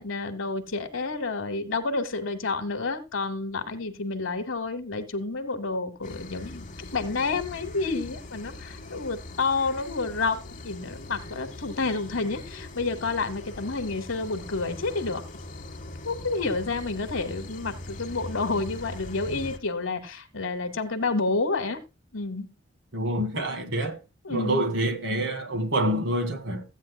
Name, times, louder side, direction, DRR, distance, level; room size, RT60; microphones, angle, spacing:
voice 1, 0.0-6.7 6.9-15.2 16.0-21.8 22.1-22.5 24.2-24.6, left 3 dB, 75° left, 1.1 m, -29 dB
sound 1, 6.0-19.6, left 2 dB, 40° left, 1.0 m, -41 dB
voice 2, 22.9-24.0 24.3-26.6, right 1 dB, 65° right, 2.1 m, -27 dB
15.0 x 9.0 x 2.2 m
head